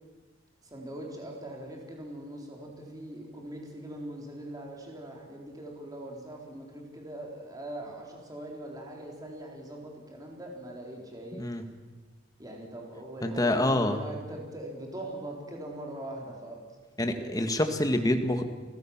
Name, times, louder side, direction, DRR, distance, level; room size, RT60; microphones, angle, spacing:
voice 1, 0.6-11.4 12.4-16.6 17.0-17.3, right 1 dB, 20° right, -1 dB, 4.1 m, -41 dB
voice 2, 13.2-14.0 17.0-18.4, left 1 dB, 20° left, 6 dB, 1.8 m, -26 dB
29.5 x 16.0 x 7.4 m, 1.3 s
head